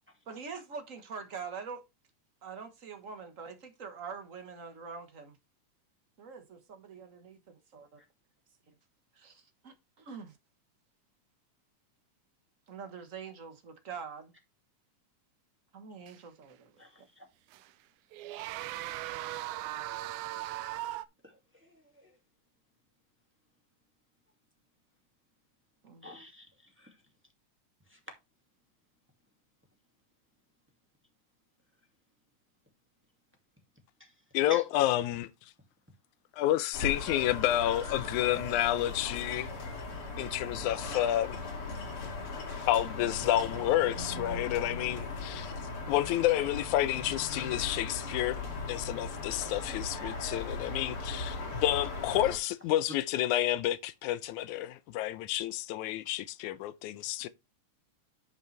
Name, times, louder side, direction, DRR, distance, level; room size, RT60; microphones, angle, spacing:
voice 1, 0.3-1.8 2.4-5.4 6.2-8.0 9.2-10.4 12.7-14.3 15.7-16.7 25.8-26.1, right 5 dB, 50° right, 1.0 m, -44 dB
sound 1, 16.1-16.2 17.5-17.7 18.1-21.1, right 15 dB, 80° right, 2.0 m, -38 dB
voice 2, 16.8-17.2 21.2-21.3 21.6-22.1 26.0-26.5 26.8-26.9 27.9-28.0 34.0-34.1 34.5-34.6, equal, 5° right, 1.6 m, -47 dB
voice 3, 34.3-35.3 36.4-39.5 40.2-41.4 42.6-45.5 45.9-48.4 48.7-57.3, left 14 dB, 85° left, 2.1 m, -30 dB
sound 2, 36.7-52.4, left 3 dB, 50° left, 3.0 m, -38 dB
11.0 x 5.4 x 3.3 m
omnidirectional pair, 3.4 m